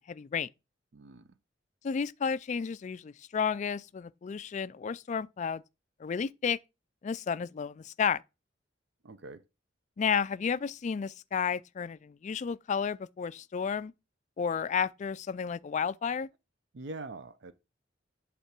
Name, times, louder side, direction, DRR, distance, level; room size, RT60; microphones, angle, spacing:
voice 1, 0.1-0.5 1.8-5.6 6.0-6.6 7.0-8.2 10.0-13.9 14.4-16.3, left 6 dB, 40° left, 0.3 m, -32 dB
voice 2, 0.9-1.3 9.0-9.4 16.7-17.5, right 2 dB, 65° right, 0.6 m, -43 dB
8.3 x 3.6 x 5.9 m
head